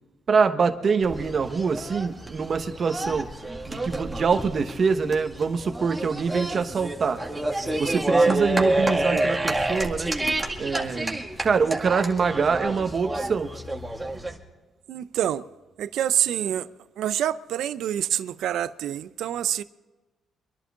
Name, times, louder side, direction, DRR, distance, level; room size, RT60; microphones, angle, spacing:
voice 1, 0.3-3.3 3.7-7.2 7.8-10.1 10.6-13.5, right 5 dB, 45° right, 1.2 m, -24 dB
sound 1, 1.0-14.4, right 2 dB, 15° right, 2.1 m, -28 dB
voice 2, 14.9-15.5 15.8-16.7 17.0-19.6, right 11 dB, 80° right, 0.6 m, -27 dB
25.0 x 11.5 x 3.7 m
cardioid pair, 90°, 0 cm